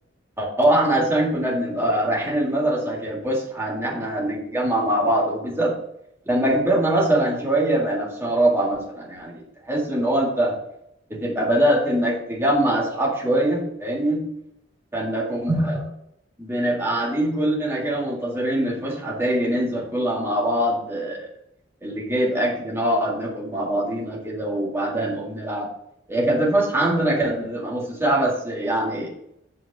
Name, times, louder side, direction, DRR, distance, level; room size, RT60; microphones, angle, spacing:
voice 1, 0.4-5.8 6.3-10.6 11.1-14.3 14.9-15.9 16.4-21.3 21.8-25.7 26.1-29.1, right 1 dB, 15° right, -2 dB, 2.0 m, -23 dB
8.4 x 3.8 x 6.6 m, 0.76 s
head